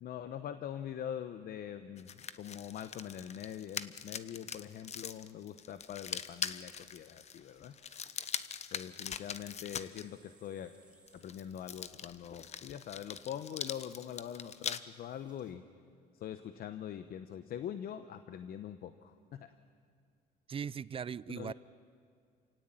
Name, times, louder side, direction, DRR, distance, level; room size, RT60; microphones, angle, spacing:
voice 1, 0.0-7.7 8.7-10.7 11.1-15.6 16.1-19.5 21.3-21.5, left 9 dB, 60° left, 10 dB, 1.0 m, -43 dB
sound 1, 2.0-10.0 11.1-14.8, left 7 dB, 40° left, 1.0 m, -42 dB
sound 2, 7.4-15.5, right 2 dB, 5° right, 4.2 m, -70 dB
voice 2, 20.5-21.5, right 7 dB, 35° right, 19 dB, 0.5 m, -39 dB
28.0 x 17.5 x 9.1 m, 2.3 s
cardioid pair, 110°, 17 cm